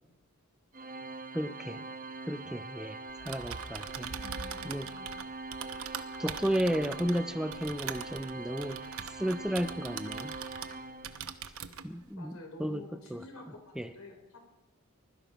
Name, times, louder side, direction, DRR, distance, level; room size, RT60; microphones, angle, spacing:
Organ, 0.7-11.5, right 3 dB, 40° right, 1.2 m, -43 dB
voice 1, 1.3-1.8 2.3-4.1 4.6-4.9 6.2-8.8 9.1-10.4 11.8-13.2 13.8-13.9, equal, 5° right, 10 dB, 0.5 m, -33 dB
Typing, 3.1-10.8 11.0-11.9, right 7 dB, 75° right, 0.9 m, -42 dB
voice 2, 4.2-5.2 12.1-14.4, left 3 dB, 75° left, 3 dB, 3.6 m, -49 dB
21.5 x 12.5 x 5.1 m, 1.0 s
head